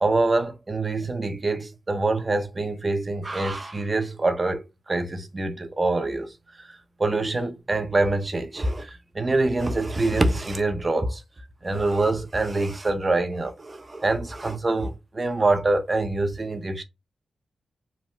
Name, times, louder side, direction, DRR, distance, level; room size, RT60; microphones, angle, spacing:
voice 1, 0.0-11.2 11.6-16.8, right 2 dB, 35° right, 0.6 m, -25 dB
3.3 x 2.0 x 2.9 m
cardioid pair, 60°, 0 cm